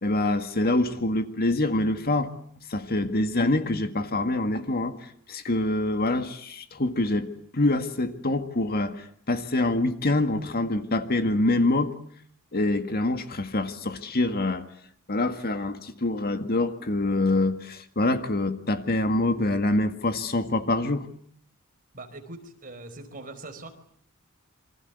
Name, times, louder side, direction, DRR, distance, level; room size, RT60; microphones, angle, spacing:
voice 1, 0.0-2.3 2.7-11.9 12.5-14.7 15.1-21.1, left 2 dB, 45° left, 8 dB, 1.9 m, -25 dB
voice 2, 21.9-23.7, right 2 dB, 40° right, 5 dB, 4.7 m, -42 dB
28.0 x 25.0 x 8.3 m, 0.63 s
head